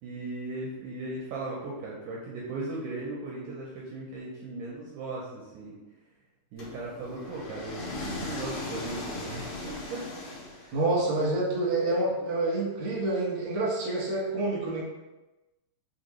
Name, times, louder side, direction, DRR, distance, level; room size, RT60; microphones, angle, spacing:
voice 1, 0.0-5.8 6.5-10.1 10.6-10.8, right 2 dB, 80° right, -4 dB, 1.8 m, -37 dB
sound 1, 6.6-11.0, left 2 dB, 70° left, 1.5 m, -38 dB
voice 2, 10.7-14.8, right 2 dB, 65° right, -6 dB, 1.1 m, -27 dB
5.3 x 2.5 x 3.0 m, 1.1 s
omnidirectional pair, 4.1 m